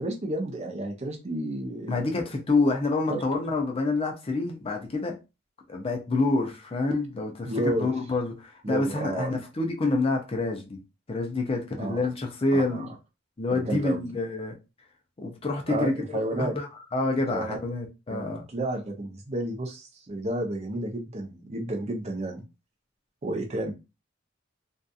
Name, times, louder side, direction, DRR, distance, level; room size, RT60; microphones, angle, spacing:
voice 1, 0.0-2.0 3.1-3.2 7.4-7.9 8.6-9.4 11.8-12.0 12.5-12.9 13.5-14.1 15.7-16.5 17.3-17.6 18.1-22.4 23.2-23.7, right 1 dB, 30° right, 0.6 m, -31 dB
voice 2, 1.9-5.2 5.7-10.8 11.1-12.9 13.4-14.6 15.2-18.4, left 3 dB, 30° left, 0.5 m, -27 dB
2.7 x 2.4 x 2.3 m
head